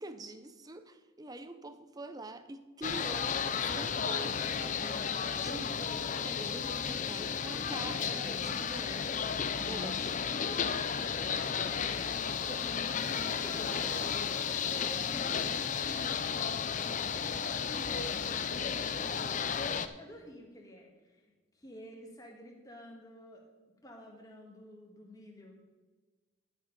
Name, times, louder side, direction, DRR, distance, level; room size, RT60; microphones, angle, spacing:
voice 1, 0.0-9.2 9.6-10.0 12.5-12.7, right 2 dB, 20° right, 10 dB, 0.5 m, -45 dB
sound 1, 2.8-19.9, left 7 dB, 35° left, 0.4 m, -33 dB
voice 2, 7.8-8.6 9.6-10.3 11.8-12.1 12.9-17.9 18.5-23.4 23.8-25.6, left 1 dB, 15° left, 0 dB, 1.7 m, -50 dB
11.5 x 7.2 x 5.3 m, 1.3 s
head